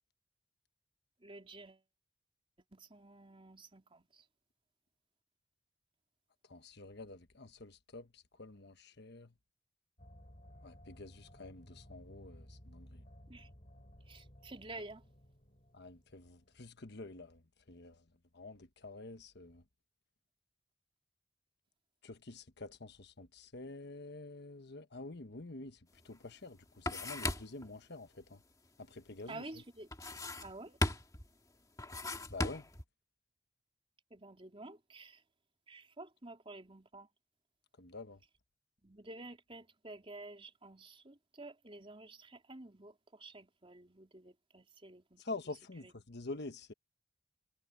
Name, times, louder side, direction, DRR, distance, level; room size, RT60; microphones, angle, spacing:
voice 1, 1.2-1.8 2.7-4.3 13.3-13.5 14.1-15.0 29.3-29.9 30.4-30.8 34.1-35.2 35.7-37.1 38.8-45.2 45.8-45.9, right 2 dB, 30° right, 3.6 m, -51 dB
voice 2, 6.5-9.3 10.6-13.0 15.7-17.4 17.7-18.0 18.3-19.6 22.0-25.8 26.0-28.4 28.8-29.4 32.3-32.6 37.8-38.2 45.2-46.7, left 2 dB, 55° left, 1.2 m, -48 dB
sound 1, 10.0-16.7, equal, 35° left, 4.4 m, -57 dB
sound 2, 26.0-26.1 26.4-27.7 29.9-30.6 30.8-31.3 31.8-32.8, left 2 dB, 20° left, 2.2 m, -37 dB
head